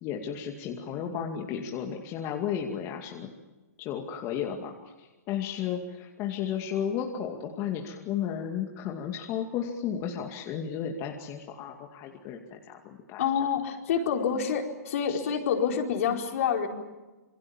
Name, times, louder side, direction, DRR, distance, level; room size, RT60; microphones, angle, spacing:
voice 1, 0.0-3.3 3.8-13.5 15.1-15.2, left 8 dB, 30° left, 2 dB, 2.4 m, -34 dB
voice 2, 13.2-16.7, left 7 dB, 55° left, 2 dB, 4.5 m, -27 dB
27.5 x 24.0 x 7.3 m, 1.2 s
hypercardioid pair, 125°, 9 cm